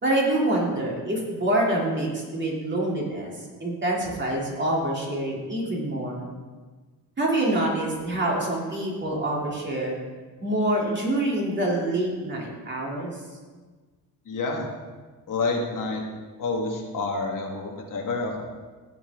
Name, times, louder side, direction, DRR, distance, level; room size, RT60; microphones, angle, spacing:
voice 1, 0.0-3.3 3.6-6.2 7.2-9.9 10.4-13.2, right 1 dB, 30° right, -4 dB, 3.1 m, -26 dB
voice 2, 14.3-14.7 15.3-16.0 16.4-18.4, left 3 dB, 60° left, 0 dB, 1.7 m, -28 dB
15.5 x 7.1 x 3.7 m, 1.4 s
cardioid pair, 110°, 37 cm